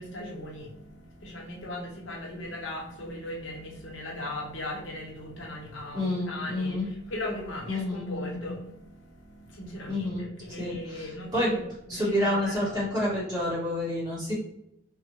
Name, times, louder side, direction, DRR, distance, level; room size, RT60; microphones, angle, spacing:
voice 1, 0.0-13.1, left 1 dB, 70° left, -1 dB, 0.7 m, -38 dB
voice 2, 5.9-6.9 7.6-8.5 9.9-10.3 10.6-11.6 11.9-14.3, left 1 dB, 20° right, -9 dB, 1.5 m, -29 dB
2.8 x 2.0 x 2.9 m, 0.82 s
head